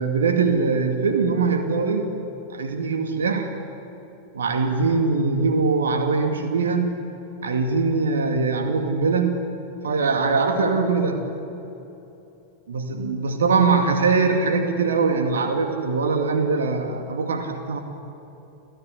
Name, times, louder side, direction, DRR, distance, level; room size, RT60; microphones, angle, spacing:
voice 1, 0.0-2.1 2.5-3.5 4.3-7.0 7.4-9.4 9.8-11.2 12.7-17.8, right 4 dB, 65° right, 5 dB, 2.4 m, -22 dB
28.5 x 15.0 x 9.8 m, 3.0 s
figure-of-eight pair, 90°, 0 cm